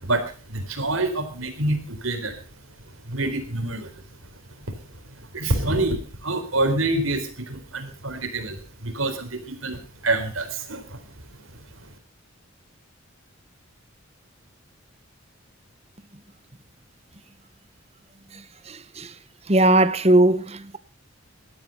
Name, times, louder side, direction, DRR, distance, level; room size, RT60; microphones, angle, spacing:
voice 1, 0.0-2.4 3.1-3.9 5.0-11.0, right 2 dB, 80° right, 4.1 m, -27 dB
voice 2, 18.7-19.1 19.5-20.8, right 1 dB, 30° right, 1.0 m, -19 dB
17.0 x 12.5 x 5.4 m
head